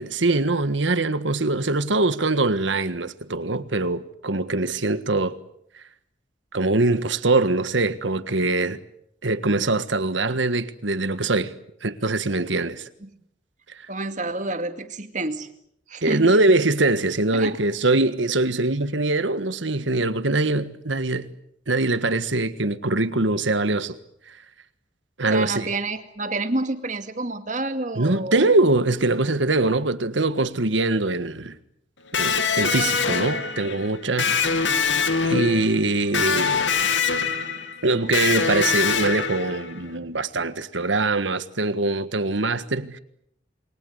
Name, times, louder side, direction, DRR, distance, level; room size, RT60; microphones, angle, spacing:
voice 1, 0.0-5.4 6.5-8.8 9.2-11.5 11.8-12.9 16.0-21.3 21.7-23.9 24.3-24.4 25.2-25.7 27.9-31.6 32.2-34.3 35.2-36.6 37.8-43.0, right 2 dB, 85° right, 1.6 m, -23 dB
voice 2, 13.9-15.5 15.9-16.4 17.3-17.6 25.3-28.5, right 2 dB, 40° right, 2.2 m, -29 dB
Electric guitar, 32.1-39.8, left 5 dB, 85° left, 2.4 m, -24 dB
28.5 x 22.5 x 8.1 m
head